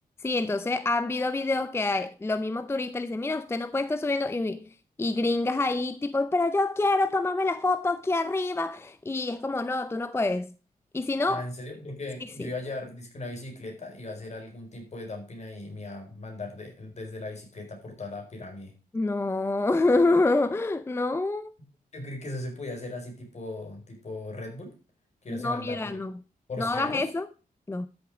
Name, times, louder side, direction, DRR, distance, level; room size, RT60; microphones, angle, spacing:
voice 1, 0.2-4.7 5.0-10.5 10.9-11.4 12.4-12.5 18.9-21.5 25.3-26.1 26.6-27.2 27.7-27.9, left 2 dB, 15° left, 0.5 m, -27 dB
voice 2, 11.2-18.7 21.9-24.8 25.2-26.0 26.5-27.1, left 2 dB, 45° left, 4.7 m, -38 dB
13.0 x 6.9 x 4.9 m
wide cardioid pair, 135°, 15 cm